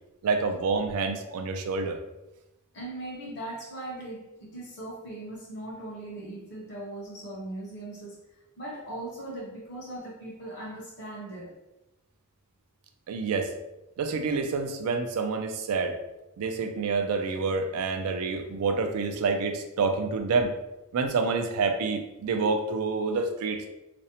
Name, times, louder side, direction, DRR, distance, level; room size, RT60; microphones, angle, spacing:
voice 1, 0.2-2.0 13.1-13.5 14.0-16.0 16.4-20.5 20.9-23.6, right 4 dB, 75° right, 6 dB, 0.3 m, -28 dB
voice 2, 2.7-8.2 8.6-11.5, right 1 dB, 50° left, -2 dB, 0.6 m, -39 dB
2.5 x 2.0 x 2.8 m, 0.96 s
head